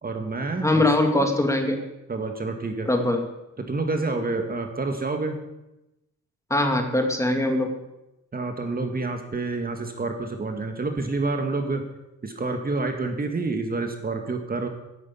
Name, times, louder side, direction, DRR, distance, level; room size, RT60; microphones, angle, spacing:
voice 1, 0.0-0.9 1.1-1.3 2.1-2.9 3.6-5.4 8.3-11.8 12.2-14.7, right 3 dB, 30° right, 5 dB, 2.0 m, -28 dB
voice 2, 0.6-1.8 2.9-3.2 6.5-7.7, left 1 dB, 10° left, 4 dB, 2.4 m, -22 dB
10.5 x 10.0 x 8.5 m, 0.94 s
cardioid pair, 90°, 30 cm